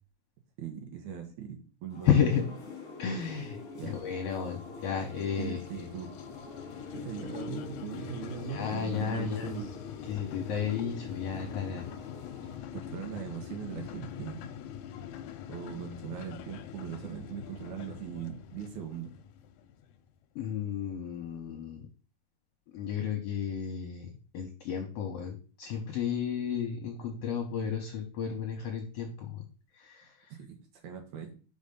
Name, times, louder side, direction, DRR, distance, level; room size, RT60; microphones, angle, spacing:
voice 1, 0.6-2.3 3.7-3.9 5.4-6.1 6.9-9.7 12.7-14.5 15.5-19.1 30.3-30.6 30.8-31.3, right 8 dB, 75° right, 4 dB, 2.7 m, -40 dB
sound 1, 1.9-12.6, left 4 dB, 35° left, 1.9 m, -45 dB
voice 2, 2.1-2.5 3.0-3.6 3.8-5.9 8.5-9.6 10.1-11.9 20.4-21.8 22.7-29.4 29.8-30.1, left 7 dB, 65° left, 3 dB, 1.8 m, -32 dB
sound 2, 3.4-20.1, left 9 dB, 80° left, 1.9 m, -45 dB
5.3 x 4.6 x 5.4 m, 0.37 s
omnidirectional pair, 3.4 m